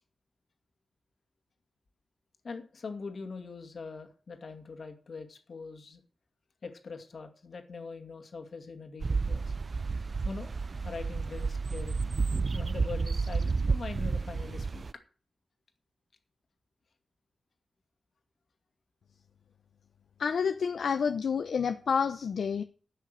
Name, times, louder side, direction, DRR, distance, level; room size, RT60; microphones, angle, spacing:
voice 1, 2.4-6.0 6.6-9.5 10.2-10.5 10.8-12.1 12.5-14.8, left 4 dB, 60° left, 2.3 m, -42 dB
sound 1, 9.0-14.9, right 4 dB, 45° right, 0.4 m, -31 dB
voice 2, 20.2-22.6, left 6 dB, 80° left, 0.7 m, -29 dB
12.0 x 6.5 x 6.6 m
wide cardioid pair, 100°, 0 cm